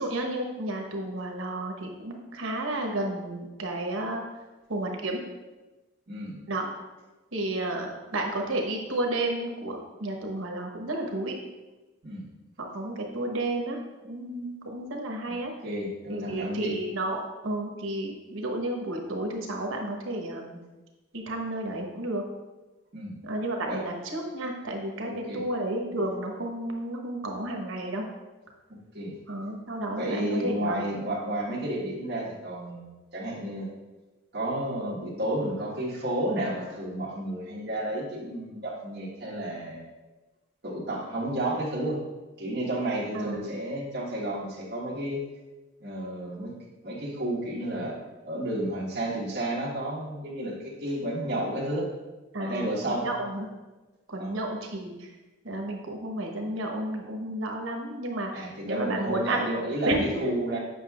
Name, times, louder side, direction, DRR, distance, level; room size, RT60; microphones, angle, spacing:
voice 1, 0.0-4.2 4.7-5.2 6.5-6.7 7.3-11.3 12.6-13.8 14.0-15.5 16.1-20.6 21.1-22.2 23.2-28.1 29.3-30.8 43.1-43.5 52.3-53.5 54.1-55.1 55.4-59.5 59.8-60.4, right 1 dB, 90° right, 2 dB, 1.0 m, -32 dB
voice 2, 6.1-6.4 12.0-12.2 15.6-16.8 22.9-23.2 23.7-23.8 25.0-25.4 28.7-29.1 30.0-33.7 34.3-39.9 40.6-42.0 42.4-45.2 45.8-46.5 46.8-48.0 48.2-51.9 52.4-53.1 54.2-54.3 58.3-59.9 60.2-60.6, right 1 dB, 50° right, -6 dB, 1.3 m, -31 dB
7.9 x 5.5 x 2.3 m, 1.1 s
head